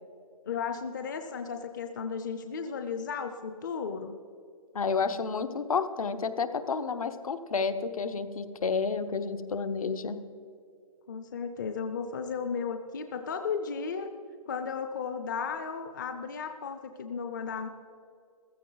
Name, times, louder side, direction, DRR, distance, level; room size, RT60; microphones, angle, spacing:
voice 1, 0.5-4.2 11.1-14.1 14.5-17.7, left 6 dB, 30° left, 7 dB, 0.6 m, -34 dB
voice 2, 4.7-10.2, left 5 dB, 65° left, 10 dB, 1.0 m, -30 dB
15.5 x 14.0 x 4.0 m, 2.4 s
hypercardioid pair, 170°, 19 cm